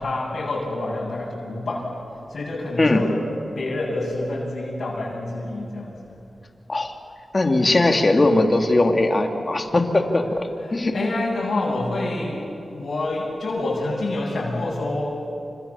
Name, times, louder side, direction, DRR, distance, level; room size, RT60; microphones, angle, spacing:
voice 1, 0.0-1.9 2.3-3.3 3.5-5.9 10.3-15.2, left 2 dB, 70° left, -7 dB, 7.6 m, -27 dB
voice 2, 7.3-10.9, left 2 dB, 35° left, 3 dB, 2.9 m, -19 dB
29.5 x 26.0 x 7.3 m, 2.7 s
wide cardioid pair, 80°, 0 cm